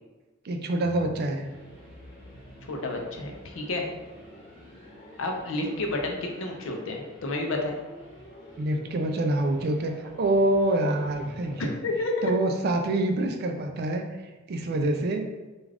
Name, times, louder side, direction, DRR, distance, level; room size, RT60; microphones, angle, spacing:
voice 1, 0.4-1.4 8.6-11.6 12.2-14.1 14.5-15.3, right 1 dB, 50° right, 5 dB, 0.3 m, -26 dB
sound 1, 0.8-11.7, equal, 45° left, 1.0 m, -48 dB
voice 2, 2.6-3.9 5.2-7.8 11.6-12.3, left 2 dB, 80° left, 2 dB, 0.5 m, -30 dB
2.4 x 2.3 x 3.3 m, 1.2 s
head